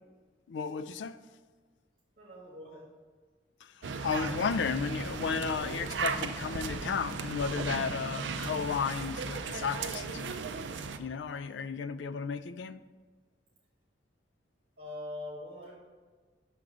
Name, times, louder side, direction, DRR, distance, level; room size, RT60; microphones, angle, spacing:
voice 1, 0.5-1.2 3.6-10.4 11.0-12.8, left 6 dB, 90° left, 0.3 m, -34 dB
voice 2, 2.2-2.9 14.8-15.7, left 1 dB, 60° right, 1.3 m, -42 dB
sound 1, 3.8-11.0, right 5 dB, 90° right, 0.5 m, -36 dB
5.9 x 3.9 x 6.0 m
head